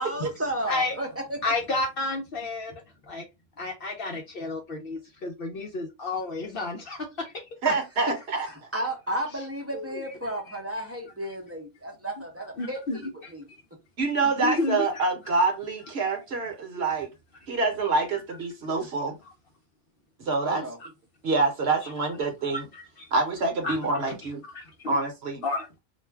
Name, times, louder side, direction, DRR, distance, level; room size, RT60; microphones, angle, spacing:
voice 1, 0.0-1.5 8.5-13.4 20.4-20.8, right 1 dB, 15° right, 0.6 m, -33 dB
voice 2, 0.6-1.0 1.4-2.7 3.0-3.2 3.6-7.5 9.7-10.0 12.6-13.6 14.2-15.0 16.0-16.2 16.9-17.0 20.8-20.9 21.8-21.9 22.5-23.1 23.6-23.8 24.1-24.2 24.5-25.0 25.4-25.8, left 3 dB, 55° left, 0.7 m, -32 dB
voice 3, 7.6-8.5 14.0-17.1 17.5-19.2 20.3-20.6 21.2-22.6 23.1-24.4 24.9-25.4, right 3 dB, 60° right, 1.0 m, -26 dB
2.5 x 2.2 x 3.3 m
omnidirectional pair, 1.3 m